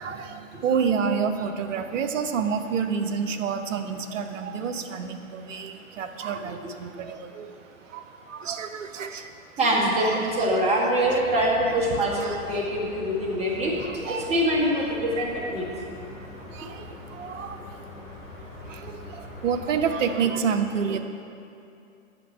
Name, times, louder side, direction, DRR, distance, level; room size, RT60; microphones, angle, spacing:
voice 1, 0.0-9.3 9.7-10.6 11.7-12.4 13.8-14.4 15.9-18.0 18.4-21.0, right 6 dB, 65° right, 7 dB, 1.0 m, -30 dB
voice 2, 9.6-13.8 14.1-15.7, right 1 dB, 15° right, -4 dB, 1.9 m, -24 dB
sound 1, 11.0-20.0, left 2 dB, 80° left, 2.4 m, -43 dB
8.5 x 6.0 x 7.4 m, 2.6 s
hypercardioid pair, 130°, 41 cm